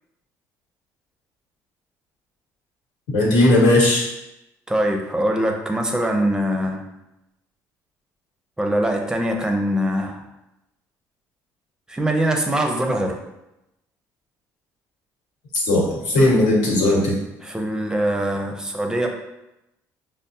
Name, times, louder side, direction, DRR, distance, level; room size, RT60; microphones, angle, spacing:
voice 1, 3.1-4.1 15.7-17.1, left 1 dB, 85° left, -4 dB, 1.2 m, -17 dB
voice 2, 4.7-6.8 8.6-10.2 11.9-13.2 17.4-19.1, right 1 dB, 10° right, 2 dB, 0.5 m, -22 dB
5.2 x 2.0 x 2.7 m, 0.91 s
cardioid pair, 100°, 7 cm